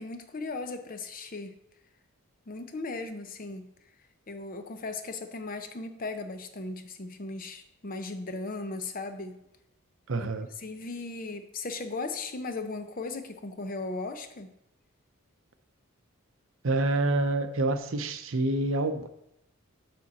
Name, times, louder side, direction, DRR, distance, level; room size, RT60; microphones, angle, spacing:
voice 1, 0.0-1.5 2.5-3.7 4.3-9.4 10.2-10.3 10.6-14.5, left 3 dB, 40° left, 8 dB, 0.6 m, -37 dB
voice 2, 10.1-10.5 16.6-19.1, right 2 dB, 65° right, 9 dB, 0.7 m, -27 dB
7.5 x 5.9 x 4.1 m, 0.78 s
head